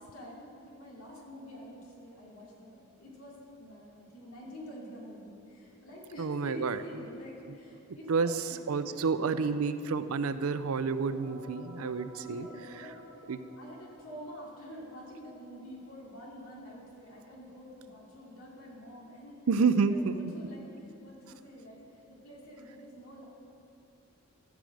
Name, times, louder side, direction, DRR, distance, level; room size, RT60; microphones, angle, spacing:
voice 1, 0.0-9.5 12.2-13.0 13.6-19.4 19.9-23.3, equal, 90° left, -4 dB, 2.7 m, -47 dB
voice 2, 6.2-6.8 8.1-12.5 12.7-12.9 13.3-13.4 19.5-20.2, right 5 dB, 80° right, 12 dB, 0.5 m, -29 dB
sound 1, 10.7-19.8, left 1 dB, 10° right, 2.7 m, -56 dB
14.0 x 4.9 x 7.8 m, 2.6 s
head